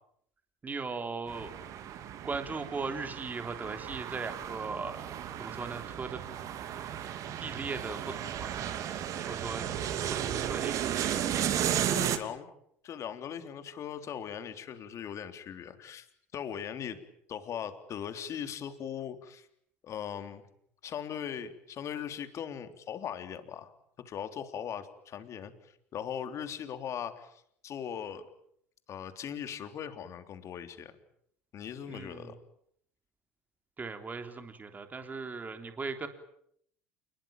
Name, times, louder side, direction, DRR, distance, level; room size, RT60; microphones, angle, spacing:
voice 1, 0.6-1.5 2.2-5.0 5.4-6.2 7.4-8.6 9.3-9.6 10.1-10.8 31.9-32.3 33.8-36.1, right 4 dB, 25° right, 7 dB, 3.4 m, -38 dB
sound 1, 1.3-12.2, right 10 dB, 50° right, 2.8 m, -34 dB
voice 2, 11.5-12.5 12.8-16.1 16.3-17.0 17.3-19.5 19.8-20.4 20.8-23.7 24.1-25.5 25.9-27.3 27.6-28.3 28.9-30.9 31.5-32.4, left 8 dB, 45° left, 9 dB, 3.5 m, -39 dB
28.5 x 21.5 x 9.0 m, 0.71 s
hypercardioid pair, 75°, 7 cm